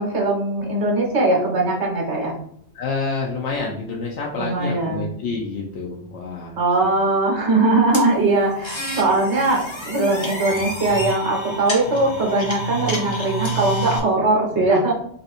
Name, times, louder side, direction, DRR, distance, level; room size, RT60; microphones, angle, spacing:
voice 1, 0.0-2.4 4.4-5.1 6.6-14.9, right 2 dB, 75° right, 0 dB, 1.5 m, -20 dB
voice 2, 2.7-7.1 9.3-9.5 14.5-14.7, left 4 dB, 85° left, -2 dB, 1.0 m, -29 dB
sound 1, 7.9-14.0, right 1 dB, 30° left, 0.7 m, -29 dB
3.4 x 2.6 x 4.1 m, 0.65 s
omnidirectional pair, 1.2 m